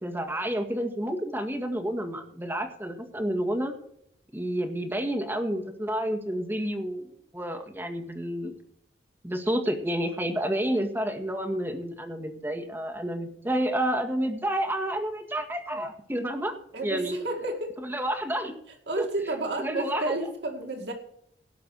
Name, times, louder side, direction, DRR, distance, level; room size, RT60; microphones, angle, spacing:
voice 1, 0.0-3.7 4.3-7.1 7.3-8.5 9.2-16.6 16.8-17.2 17.8-18.5 19.0-19.1 19.6-20.1, right 1 dB, 10° right, 4 dB, 1.9 m, -30 dB
voice 2, 16.7-17.7 18.9-20.9, right 2 dB, 65° right, 3 dB, 2.2 m, -31 dB
17.5 x 6.0 x 6.3 m, 0.70 s
head